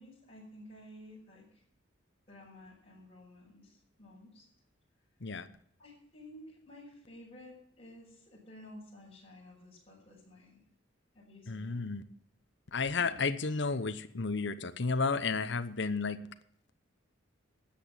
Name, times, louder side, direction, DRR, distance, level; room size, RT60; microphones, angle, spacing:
voice 1, 0.0-1.6 2.3-4.5 5.8-10.6 11.1-11.8 13.0-13.1, left 1 dB, 30° left, -9 dB, 5.8 m, -53 dB
voice 2, 11.5-12.0 12.7-16.2, left 4 dB, 65° left, 11 dB, 0.9 m, -32 dB
13.0 x 8.6 x 7.4 m, 0.67 s
head